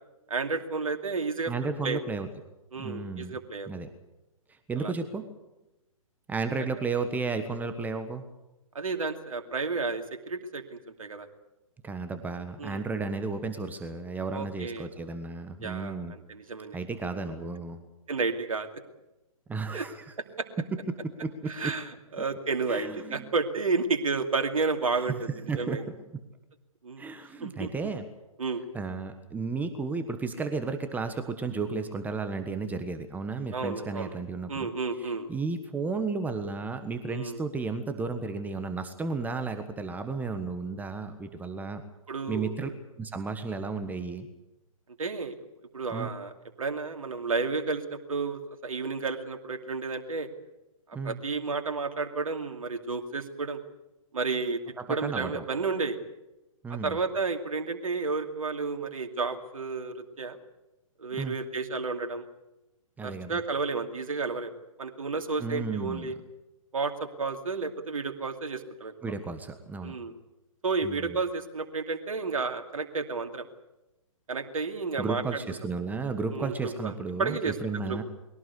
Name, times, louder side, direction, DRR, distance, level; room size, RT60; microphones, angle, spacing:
voice 1, 0.3-2.0 2.7-3.7 4.8-4.9 8.7-11.3 12.6-12.8 14.3-14.9 15.6-16.8 18.1-18.7 19.7-19.8 20.4-20.5 21.5-25.3 25.6-25.8 26.8-27.1 27.4-27.7 28.4-28.6 33.5-34.1 34.5-35.3 37.0-37.4 42.1-42.7 45.0-45.3 45.7-46.3 46.6-50.3 51.0-53.6 54.1-54.6 54.9-56.0 56.8-60.4 61.0-62.2 63.0-64.5 64.8-66.2 66.7-68.9 69.8-70.1 70.6-73.5 74.3-75.6 76.3-76.9 77.2-77.5 77.9-78.0, right 4 dB, 75° right, 5 dB, 2.6 m, -31 dB
voice 2, 1.5-2.3 2.7-3.3 3.7-3.9 4.5-5.2 6.3-8.3 11.8-16.1 16.7-17.8 19.5-20.1 20.9-21.7 22.7-23.3 24.9-26.2 27.0-28.0 28.7-34.7 35.0-41.8 42.3-42.7 43.0-44.3 45.9-46.1 50.9-51.2 54.8-55.4 56.6-57.0 61.2-61.3 63.0-63.4 65.4-66.1 69.0-69.9 70.8-71.2 75.0-78.0, right 4 dB, 10° right, 8 dB, 1.4 m, -33 dB
22.0 x 17.5 x 8.3 m, 0.99 s
figure-of-eight pair, 125°, 18 cm